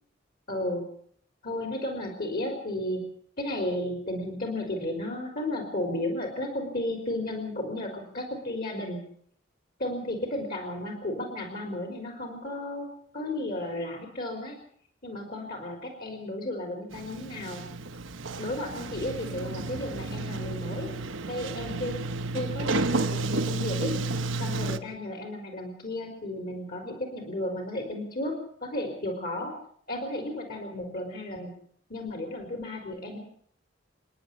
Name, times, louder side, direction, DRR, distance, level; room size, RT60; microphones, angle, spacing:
voice 1, 0.5-0.9 1.4-3.0 3.4-9.0 9.8-14.6 15.0-17.6 18.4-20.9 21.3-22.0 22.3-24.0 24.4-29.5 29.9-31.5 31.9-33.2, left 1 dB, 45° left, 4 dB, 4.1 m, -33 dB
Sliding door, 16.9-24.8, right 3 dB, 85° right, 1.1 m, -31 dB
28.5 x 10.0 x 9.5 m, 0.62 s
head